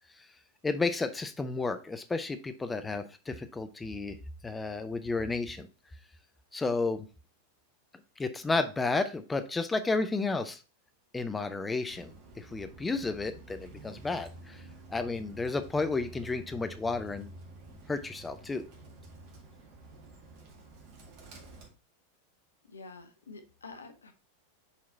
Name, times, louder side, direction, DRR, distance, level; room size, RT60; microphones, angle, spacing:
voice 1, 0.6-4.2 4.4-5.7 6.5-7.1 8.2-10.6 11.1-14.6 14.9-17.3 17.9-18.6, left 3 dB, 10° left, 9 dB, 0.6 m, -32 dB
Bird, 11.9-21.7, right 2 dB, 40° right, 1.8 m, -50 dB
voice 2, 22.7-24.1, left 3 dB, 75° left, 8 dB, 0.9 m, -48 dB
5.7 x 4.8 x 4.0 m, 0.33 s
figure-of-eight pair, 90°, 0 cm